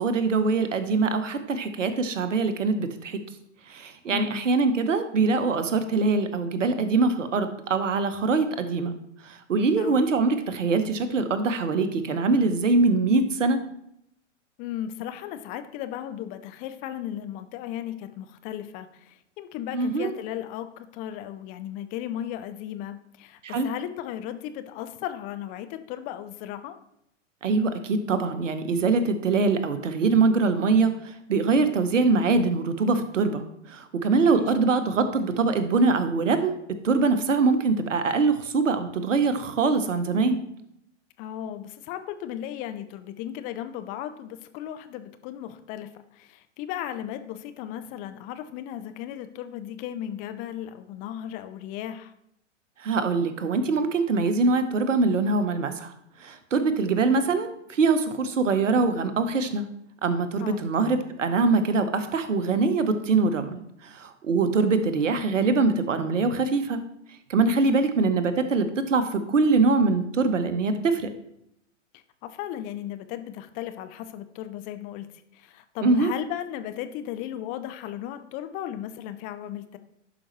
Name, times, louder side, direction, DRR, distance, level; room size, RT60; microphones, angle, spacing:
voice 1, 0.0-3.2 3.7-8.9 9.2-13.6 19.7-20.1 23.4-23.7 27.4-36.6 36.8-40.4 52.8-55.9 56.2-59.7 60.0-66.8 67.3-71.1 75.8-76.1, right 4 dB, 75° right, 10 dB, 1.0 m, -23 dB
voice 2, 4.1-4.4 9.8-10.0 14.6-26.8 34.3-34.5 41.2-52.1 60.4-60.6 67.5-67.9 71.9-75.1 75.3-79.8, left 11 dB, 25° left, 10 dB, 0.4 m, -36 dB
11.0 x 5.1 x 3.1 m, 0.76 s
figure-of-eight pair, 105°, 37 cm